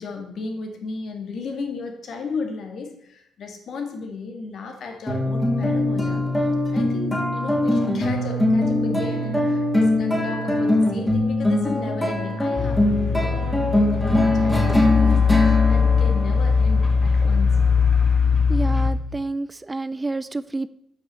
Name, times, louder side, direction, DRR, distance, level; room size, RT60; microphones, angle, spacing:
voice 1, 0.0-15.3 15.7-17.6, left 4 dB, 60° left, 4 dB, 2.2 m, -34 dB
sound 1, 5.1-17.8, left 1 dB, 10° left, 2.8 m, -22 dB
sound 2, 12.6-18.9, left 5 dB, 35° left, 1.4 m, -20 dB
voice 2, 18.5-20.7, right 2 dB, 25° right, 16 dB, 0.4 m, -29 dB
8.3 x 6.0 x 7.5 m, 0.78 s
supercardioid pair, 60°, 0 cm